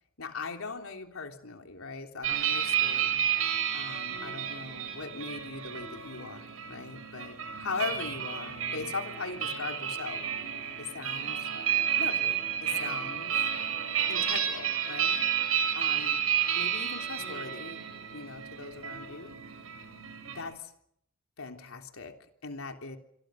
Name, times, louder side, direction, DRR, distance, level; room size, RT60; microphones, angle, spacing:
voice 1, 0.2-3.2 3.7-10.2 10.8-11.5 12.0-13.5 14.1-15.2 15.7-16.2 16.6-17.8 18.1-19.3 20.3-20.7 21.4-22.1 22.4-23.0, left 4 dB, 85° left, 4 dB, 3.4 m, -40 dB
sound 1, 2.2-20.5, right 9 dB, 85° right, 7.0 m, -31 dB
27.5 x 24.0 x 6.5 m, 0.73 s
head